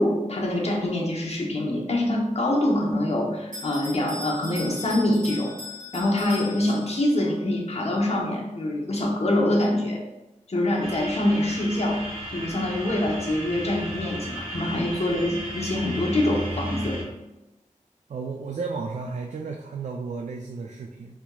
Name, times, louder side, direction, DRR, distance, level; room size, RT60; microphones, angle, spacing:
voice 1, 0.0-5.5 5.9-10.0 10.5-12.0 12.3-17.0, left 1 dB, 50° left, -2 dB, 0.9 m, -25 dB
Bell, 3.5-7.2, left 2 dB, 85° right, 1.2 m, -39 dB
sound 1, 10.8-17.0, equal, 45° right, 1.2 m, -35 dB
voice 2, 18.1-21.2, right 4 dB, 65° right, 1 dB, 0.4 m, -33 dB
4.3 x 2.8 x 2.2 m, 0.99 s
cardioid pair, 40°, 13 cm